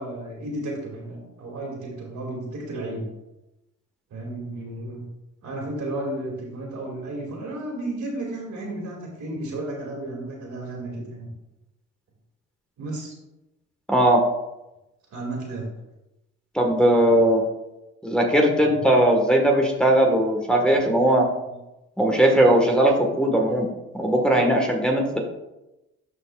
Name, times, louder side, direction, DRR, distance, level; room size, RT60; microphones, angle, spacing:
voice 1, 0.0-3.0 4.1-5.0 5.4-11.3 12.8-13.1 15.1-15.7 16.9-17.2 18.6-18.7 21.5-21.6, right 2 dB, 70° right, -1 dB, 2.4 m, -33 dB
voice 2, 13.9-14.2 16.5-17.4 18.0-21.2 22.0-23.7 23.9-25.2, right 1 dB, 5° left, -1 dB, 1.4 m, -19 dB
13.0 x 4.6 x 2.4 m, 0.97 s
cardioid pair, 90°, 30 cm